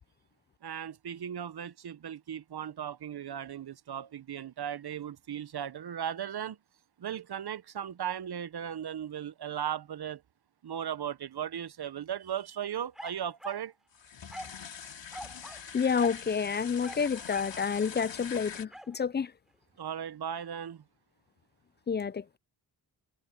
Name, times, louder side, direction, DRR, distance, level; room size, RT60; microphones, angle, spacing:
voice 1, 0.6-6.6 7.0-10.2 10.6-13.7 19.8-20.8, right 9 dB, 55° right, 0.9 m, -37 dB
sound 1, 12.9-13.7 14.3-14.6 15.1-15.7 15.9-16.2 16.8-17.6 18.7-18.9, equal, ahead, 4.9 m, -44 dB
sound 2, 13.9-18.7, left 7 dB, 70° left, 4.3 m, -44 dB
voice 2, 15.7-19.3 21.9-22.2, left 6 dB, 25° left, 0.3 m, -29 dB
cardioid pair, 50°, 45 cm